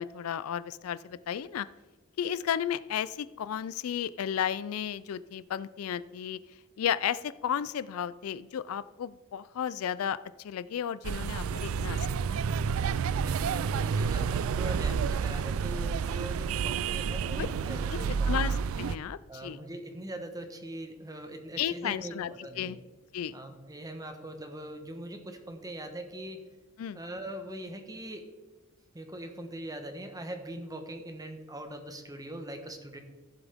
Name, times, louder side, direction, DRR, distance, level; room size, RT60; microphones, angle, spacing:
voice 1, 0.0-1.7 2.2-6.4 6.8-12.1 12.3-12.4 17.4-17.5 17.9-19.6 21.6-22.8 23.1-23.3 26.8-27.0, left 9 dB, 75° left, 17 dB, 0.3 m, -33 dB
sound 1, 11.0-19.0, right 6 dB, 70° right, 0.3 m, -30 dB
voice 2, 13.0-18.4 19.3-22.7 23.3-26.4 26.9-28.3 28.9-33.0, right 1 dB, 15° right, 6 dB, 1.1 m, -41 dB
15.5 x 7.2 x 3.5 m, 1.2 s
head